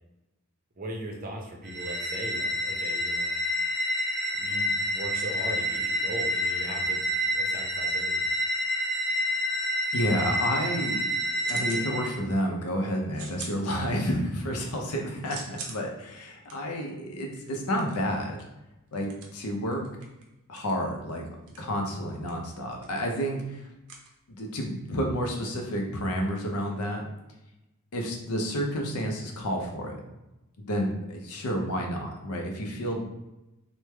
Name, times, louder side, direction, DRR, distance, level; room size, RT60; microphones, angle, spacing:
voice 1, 0.8-3.4 4.4-8.2, right 1 dB, 40° right, 1 dB, 0.6 m, -39 dB
sound 1, 1.7-12.2, equal, 5° left, 0.5 m, -28 dB
voice 2, 9.9-11.1 11.5-18.4 18.9-19.9 20.5-21.2 21.6-23.7 24.3-27.0 27.9-30.0 30.6-33.1, equal, 90° left, 2 dB, 0.6 m, -30 dB
sound 2, 11.4-11.9 12.2-12.7 13.1-14.3 14.6-24.7, right 4 dB, 80° right, 0.6 m, -45 dB
3.2 x 2.1 x 3.2 m, 0.96 s
head